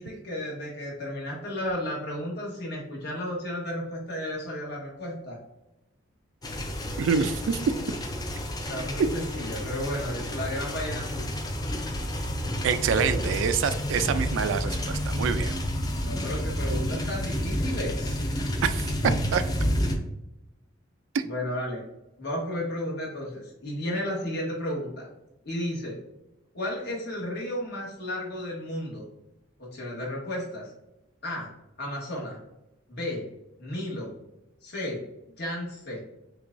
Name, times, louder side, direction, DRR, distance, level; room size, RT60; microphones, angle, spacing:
voice 1, 0.0-5.4 8.7-11.3 15.9-18.2 21.2-21.8 22.2-25.1 25.4-26.0 26.5-29.0 29.6-30.7 31.2-31.5 31.8-32.4 32.9-33.2 33.6-34.1 34.6-35.0 35.4-36.0, left 1 dB, 55° left, -3 dB, 1.3 m, -33 dB
sound 1, 6.4-20.0, equal, 20° left, 0.4 m, -30 dB
voice 2, 7.0-7.6 9.0-9.1 12.6-15.5 18.6-19.4 21.1-21.2, right 6 dB, 75° right, 12 dB, 0.3 m, -26 dB
5.8 x 2.3 x 2.5 m, 0.91 s
head